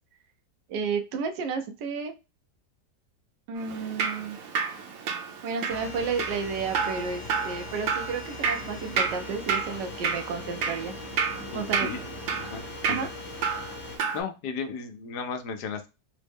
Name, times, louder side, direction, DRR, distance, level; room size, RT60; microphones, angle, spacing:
voice 1, 0.7-2.1 3.5-4.4 5.4-10.9 11.5-11.9 12.9-13.1, right 5 dB, 90° right, 6 dB, 1.3 m, -32 dB
Drip, 3.6-14.2, right 6 dB, 65° right, 1.1 m, -31 dB
sound 1, 5.7-14.0, left 3 dB, 50° left, 1.1 m, -41 dB
voice 2, 11.5-12.0 12.4-13.1 14.1-15.9, left 5 dB, 75° left, 7 dB, 1.1 m, -35 dB
3.6 x 2.0 x 3.4 m, 0.28 s
omnidirectional pair, 1.8 m